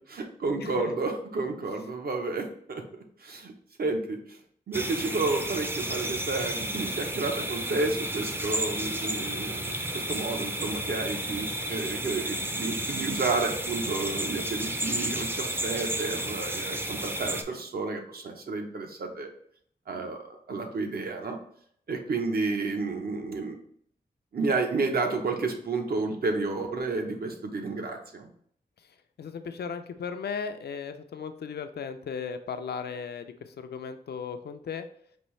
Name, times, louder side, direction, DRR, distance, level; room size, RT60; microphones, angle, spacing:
voice 1, 0.1-2.8 3.2-3.5 3.8-4.4 4.7-19.3 19.9-21.4 21.9-23.6 24.3-28.3, right 3 dB, 65° right, 3 dB, 0.8 m, -31 dB
voice 2, 0.6-0.9 29.2-34.9, left 6 dB, 75° left, 8 dB, 0.4 m, -36 dB
sound 1, 4.7-17.4, right 1 dB, 15° right, 0.4 m, -32 dB
5.3 x 2.6 x 3.1 m, 0.65 s
wide cardioid pair, 115°, 17 cm